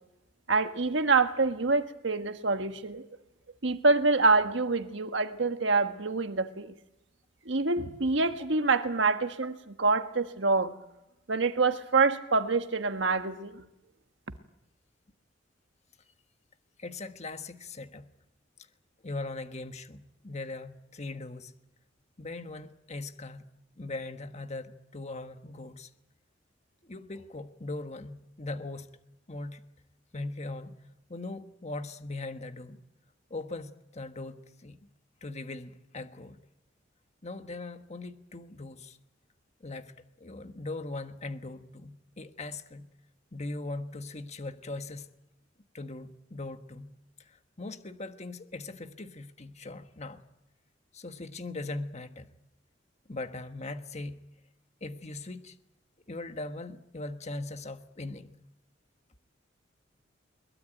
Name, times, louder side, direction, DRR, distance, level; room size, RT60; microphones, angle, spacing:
voice 1, 0.5-3.1 3.6-6.7 7.4-10.7 11.3-13.6, right 3 dB, 70° right, 1.5 m, -26 dB
voice 2, 16.8-18.1 19.0-21.5 22.2-23.4 23.8-25.9 26.8-28.9 29.3-29.6 30.1-30.8 31.1-32.8 33.3-34.9 35.2-36.4 37.2-39.0 39.6-39.9 40.2-42.9 43.3-45.1 45.7-46.9 47.2-50.2 50.9-52.3 53.1-54.2 54.8-55.6 56.1-58.4, left 2 dB, 35° left, 1.5 m, -40 dB
22.5 x 21.5 x 9.1 m
head